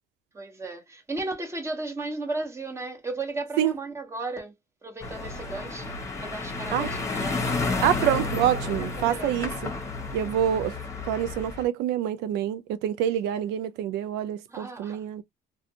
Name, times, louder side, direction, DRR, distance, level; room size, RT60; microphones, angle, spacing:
voice 1, 0.3-4.5 4.8-8.2 9.0-9.3 14.5-15.0, right 2 dB, 15° right, 1.0 m, -35 dB
sound 1, 5.0-11.6, left 3 dB, 15° left, 1.0 m, -31 dB
voice 2, 7.8-9.7 10.1-10.8 11.1-15.2, right 10 dB, 90° right, 0.4 m, -26 dB
2.5 x 2.3 x 2.7 m
cardioid pair, 110°, 17 cm